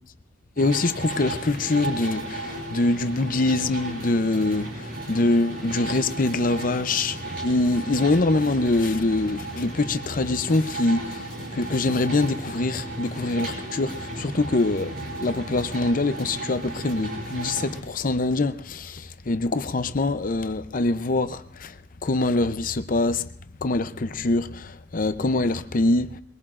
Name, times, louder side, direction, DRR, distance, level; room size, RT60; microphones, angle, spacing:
voice 1, 0.6-11.2 11.5-21.7 22.0-23.3 23.6-26.2, left 2 dB, 45° left, 0.7 m, -24 dB
sound 1, 0.6-17.8, right 2 dB, 50° right, 5.8 m, -35 dB
22.5 x 22.0 x 2.5 m
head